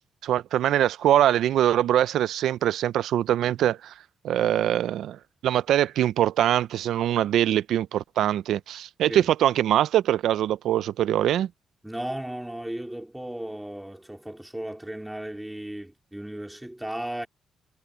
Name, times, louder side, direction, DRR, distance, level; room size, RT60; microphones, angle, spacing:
voice 1, 0.2-3.9 4.2-11.5, right 11 dB, 90° right, 0.5 m, -23 dB
voice 2, 11.8-17.3, right 1 dB, 5° right, 3.5 m, -35 dB
wide cardioid pair, 170°, 0 cm